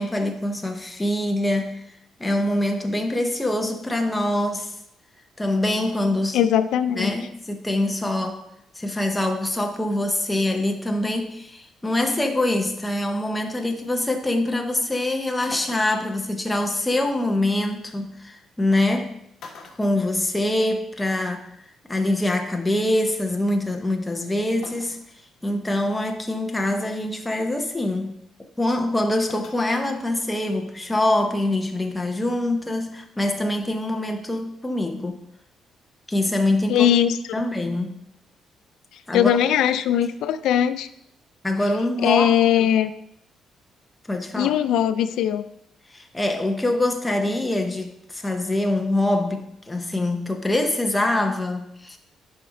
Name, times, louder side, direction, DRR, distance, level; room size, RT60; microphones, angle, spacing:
voice 1, 0.0-1.8 2.2-4.7 5.4-6.4 7.0-8.4 8.8-19.1 19.8-21.5 21.9-25.0 25.4-28.1 28.6-35.2 36.1-36.9 37.3-38.0 39.1-39.3 41.4-42.7 44.1-44.6 45.9-52.0, left 1 dB, 5° left, 3 dB, 0.8 m, -24 dB
voice 2, 6.3-7.1 36.7-37.2 39.1-40.9 42.0-42.9 44.4-45.4, left 10 dB, 85° left, 12 dB, 0.4 m, -20 dB
sound 1, 15.5-16.2 17.8-17.9 18.8-19.0 19.4-20.8 21.1-21.2 22.4-22.5 24.6-25.1 25.7-25.8 26.4-26.7 29.3-29.9 30.2-30.3, left 4 dB, 50° left, 1.4 m, -44 dB
11.0 x 5.1 x 3.8 m, 0.77 s
cardioid pair, 170°, 0 cm